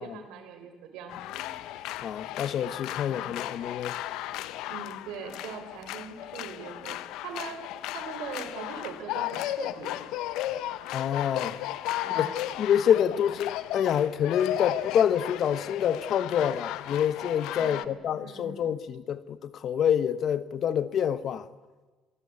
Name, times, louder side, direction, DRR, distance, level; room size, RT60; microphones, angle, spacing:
voice 1, 0.0-1.5 3.1-3.2 4.6-7.6 7.9-10.0 12.0-12.3 17.6-18.7, right 6 dB, 80° right, 4.6 m, -41 dB
sound 1, 1.1-17.9, left 14 dB, 80° left, 0.8 m, -35 dB
voice 2, 2.0-3.9 10.9-11.6 12.1-12.3 12.6-21.5, left 9 dB, 55° left, 1.2 m, -27 dB
27.0 x 18.5 x 8.6 m
cardioid pair, 100°, 0 cm